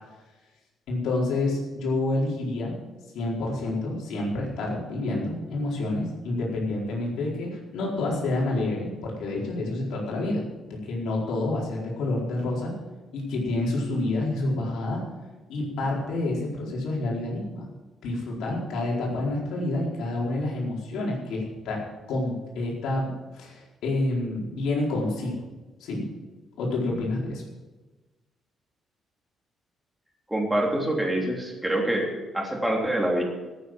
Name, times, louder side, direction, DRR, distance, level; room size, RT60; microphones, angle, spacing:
voice 1, 0.9-2.7 3.1-12.7 13.1-15.0 15.5-17.7 18.0-21.8 22.1-25.3 25.8-26.0 26.6-27.4, left 2 dB, 90° left, -3 dB, 4.6 m, -28 dB
voice 2, 30.3-33.2, right 1 dB, 5° right, 0 dB, 3.3 m, -26 dB
14.5 x 9.5 x 7.6 m, 1.2 s
cardioid pair, 130°, 0 cm